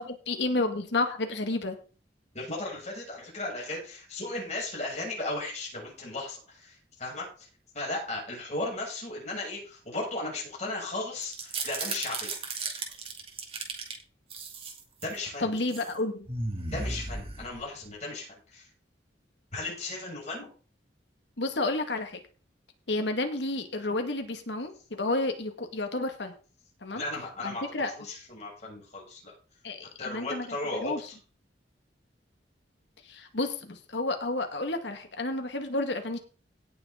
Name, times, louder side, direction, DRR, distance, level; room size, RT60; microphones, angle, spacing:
voice 1, 0.0-1.8 15.4-16.3 21.4-22.2 22.9-26.3 26.8-27.0 27.4-27.9 29.6-30.5 30.7-31.0 33.0-36.2, left 2 dB, 75° left, 6 dB, 1.8 m, -31 dB
voice 2, 2.3-7.5 7.7-12.3 15.0-15.5 16.7-18.7 19.5-20.5 26.9-29.3 30.0-30.9, left 2 dB, 40° left, -2 dB, 7.0 m, -36 dB
sound 1, 11.2-13.9 14.3-15.2 15.6-15.9 16.3-17.9, right 3 dB, 30° right, 2.6 m, -35 dB
17.5 x 6.9 x 3.8 m, 0.37 s
head